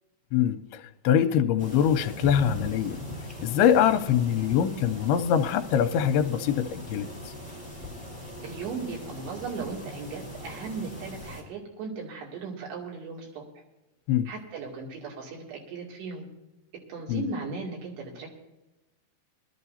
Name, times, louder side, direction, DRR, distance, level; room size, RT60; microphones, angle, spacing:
voice 1, 0.3-3.0 3.4-7.1 14.1-14.3 17.1-17.3, left 9 dB, 80° left, 2.5 m, -24 dB
sound 1, 1.6-11.4, left 1 dB, ahead, 4.4 m, -40 dB
voice 2, 8.4-13.4 14.3-16.3 16.9-18.3, right 4 dB, 85° right, 4.9 m, -37 dB
22.5 x 12.5 x 2.8 m
omnidirectional pair, 4.7 m